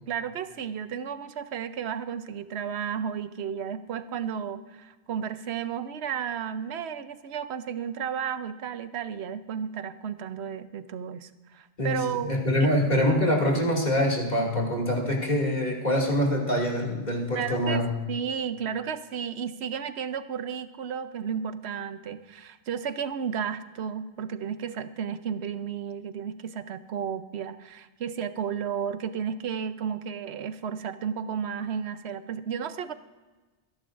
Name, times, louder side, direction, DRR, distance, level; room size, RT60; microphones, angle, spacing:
voice 1, 0.1-12.3 12.6-12.7 17.3-17.8 18.1-32.9, right 7 dB, 80° right, 12 dB, 1.0 m, -33 dB
voice 2, 11.8-17.9, equal, 40° left, -2 dB, 2.5 m, -25 dB
25.0 x 11.0 x 2.5 m, 1.3 s
omnidirectional pair, 1.1 m